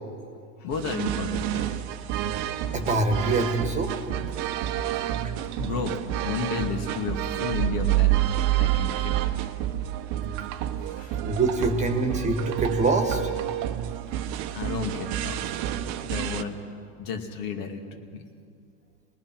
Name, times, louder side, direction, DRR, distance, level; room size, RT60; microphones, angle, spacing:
voice 1, 0.6-1.7 4.9-5.1 5.6-6.0 6.2-8.2 8.6-9.1 11.0-11.4 14.5-15.6 16.0-16.6 17.0-17.8 18.1-18.2, left 5 dB, 55° left, 4 dB, 2.4 m, -32 dB
sound 1, 0.7-16.4, right 11 dB, 40° right, 1.1 m, -31 dB
voice 2, 2.7-3.9 5.2-5.3 11.3-13.3, right 3 dB, 15° right, 6 dB, 1.7 m, -24 dB
sound 2, 7.5-10.4, right 19 dB, 75° right, 0.9 m, -25 dB
27.5 x 19.5 x 6.1 m, 2.3 s
supercardioid pair, 140°, 45 cm